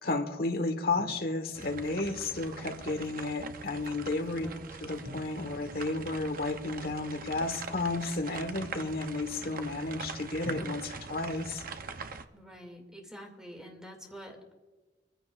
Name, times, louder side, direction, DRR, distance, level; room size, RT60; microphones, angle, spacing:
voice 1, 0.0-4.5 4.8-11.6, left 2 dB, 60° left, 7 dB, 1.3 m, -32 dB
Drum, 1.0-2.0 5.0-6.9 10.4-12.4, equal, 80° right, 5.3 m, -50 dB
sound 1, 1.5-12.3, right 4 dB, 55° right, 0.7 m, -43 dB
voice 2, 4.3-4.9 12.3-14.5, equal, 5° right, 2 dB, 2.4 m, -47 dB
23.5 x 15.0 x 2.5 m, 1.2 s
head